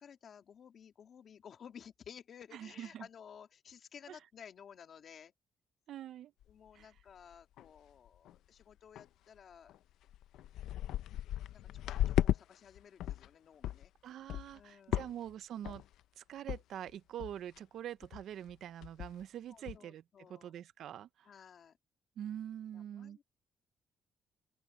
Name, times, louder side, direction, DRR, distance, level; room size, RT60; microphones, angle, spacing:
voice 1, 0.0-5.3 6.5-9.7 10.6-11.1 11.5-13.9 14.5-15.1 19.5-20.5 21.2-21.8 22.7-23.2, left 7 dB, 55° left, 1.9 m, -55 dB
voice 2, 2.5-3.1 4.1-4.2 5.9-6.3 6.8-6.9 14.0-15.8 16.2-20.0 20.3-21.3 22.2-23.2, right 10 dB, 75° right, 0.6 m, -45 dB
sound 1, 6.4-6.5 7.0-7.1 7.3-7.8 8.1-8.4 9.0-9.1 9.7-9.8 10.1-12.4 12.8-13.3 13.6-13.9 14.3-14.6 14.9-15.3 15.6-16.0 16.5-16.6 16.9-17.0 17.2-17.6 18.0-18.2 18.5-18.6 18.8-19.2 19.7-19.8, left 13 dB, 85° left, 0.6 m, -35 dB
open air
cardioid pair, 90°, 0 cm